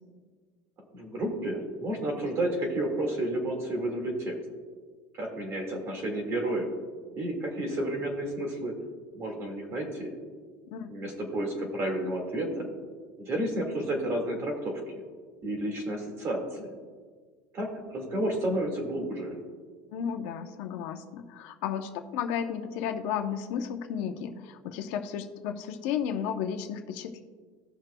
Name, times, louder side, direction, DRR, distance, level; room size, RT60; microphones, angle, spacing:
voice 1, 0.9-4.3 5.1-6.7 7.2-8.7 9.1-10.1 10.9-12.7 13.2-14.8 15.4-16.7 17.5-19.4, right 1 dB, 30° right, 2 dB, 1.8 m, -31 dB
voice 2, 19.9-27.2, left 8 dB, 65° left, 6 dB, 0.7 m, -33 dB
17.5 x 5.9 x 2.2 m, 1.5 s
cardioid pair, 175°, 9 cm